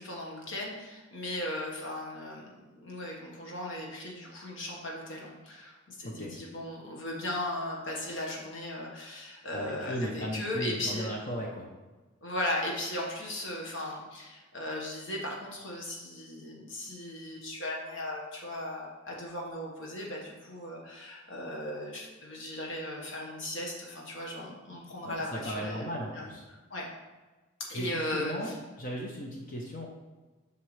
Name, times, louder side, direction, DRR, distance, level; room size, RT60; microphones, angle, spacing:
voice 1, 0.0-11.1 12.2-25.9 26.1-26.2 26.5-26.9 27.7-28.5, left 1 dB, 60° left, -2 dB, 1.6 m, -37 dB
voice 2, 6.0-6.3 9.5-11.7 24.7-24.8 25.0-26.4 27.7-28.5 28.8-29.9, equal, 40° left, -1 dB, 0.8 m, -36 dB
7.4 x 5.8 x 3.3 m, 1.2 s
head